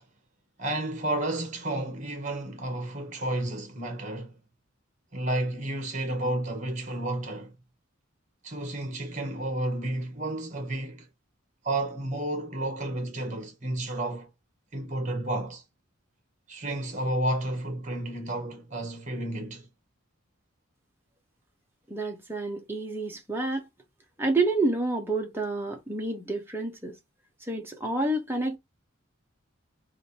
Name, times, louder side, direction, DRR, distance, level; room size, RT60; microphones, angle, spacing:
voice 1, 0.6-4.3 5.1-7.5 8.4-11.1 11.6-14.3 14.7-15.6 16.5-19.7, right 1 dB, 35° right, 1.3 m, -31 dB
voice 2, 21.9-23.6 24.2-27.0 27.5-28.6, right 2 dB, 10° right, 1.0 m, -29 dB
3.6 x 2.7 x 4.3 m
head